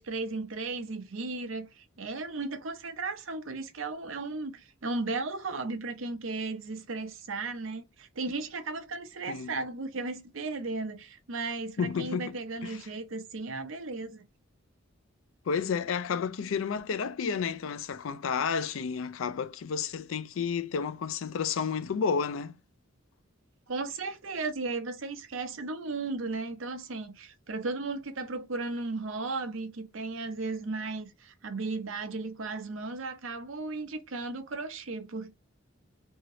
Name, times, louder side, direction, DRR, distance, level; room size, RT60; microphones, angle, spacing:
voice 1, 0.0-14.2 23.7-35.3, right 3 dB, 75° right, 0.7 m, -35 dB
voice 2, 11.8-12.4 12.6-12.8 15.5-22.5, left 6 dB, 80° left, 0.4 m, -31 dB
2.8 x 2.8 x 2.9 m
head